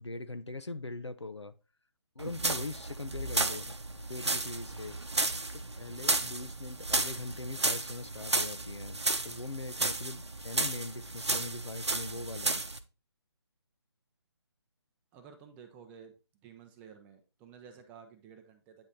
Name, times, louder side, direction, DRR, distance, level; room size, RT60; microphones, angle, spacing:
voice 1, 0.0-1.5 2.2-5.0 5.5-12.6, left 2 dB, 85° left, 0.6 m, -41 dB
sound 1, 2.2-12.8, right 2 dB, 80° right, 0.7 m, -33 dB
voice 2, 15.1-16.1 16.4-18.9, right 7 dB, 10° right, 0.5 m, -53 dB
8.7 x 3.1 x 3.8 m
figure-of-eight pair, 145°, 14 cm